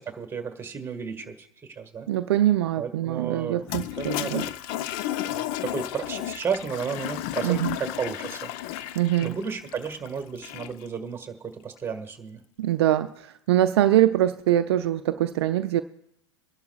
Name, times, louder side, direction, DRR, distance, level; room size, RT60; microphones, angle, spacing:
voice 1, 0.0-2.1 2.8-4.5 5.2-12.4, right 6 dB, 15° right, 6 dB, 1.6 m, -33 dB
voice 2, 2.1-4.4 7.4-7.8 9.0-9.4 12.6-15.8, right 13 dB, 60° right, 10 dB, 0.5 m, -23 dB
Toilet flush, 3.6-10.9, left 13 dB, 45° left, 0.6 m, -33 dB
26.0 x 11.5 x 2.4 m, 0.77 s
figure-of-eight pair, 95°, 15 cm